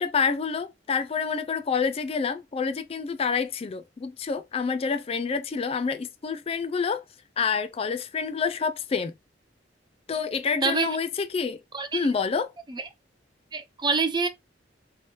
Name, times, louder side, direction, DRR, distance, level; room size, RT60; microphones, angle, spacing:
voice 1, 0.0-7.0 7.4-9.1 10.1-11.6 11.9-12.5, left 5 dB, 30° left, 0.4 m, -28 dB
voice 2, 10.6-11.0 11.7-12.1 12.7-12.9 13.5-14.3, right 4 dB, 25° right, 0.6 m, -26 dB
3.1 x 3.1 x 4.3 m
head